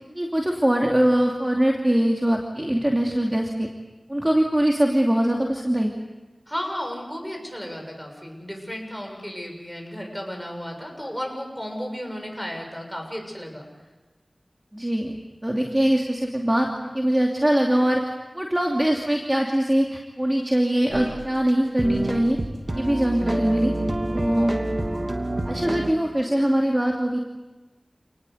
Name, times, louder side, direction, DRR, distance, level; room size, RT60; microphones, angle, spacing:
voice 1, 0.1-3.7 4.1-5.9 14.7-15.1 15.4-22.4 22.7-23.7 24.1-24.5 25.4-27.2, right 1 dB, 20° right, 1 dB, 2.8 m, -22 dB
voice 2, 6.5-13.7, equal, 5° right, 3 dB, 7.3 m, -34 dB
sound 1, 20.9-21.2 21.5-21.6 21.8-25.9, right 1 dB, 50° right, 2.8 m, -27 dB
29.0 x 19.5 x 8.1 m, 1.2 s
wide cardioid pair, 50°, 0 cm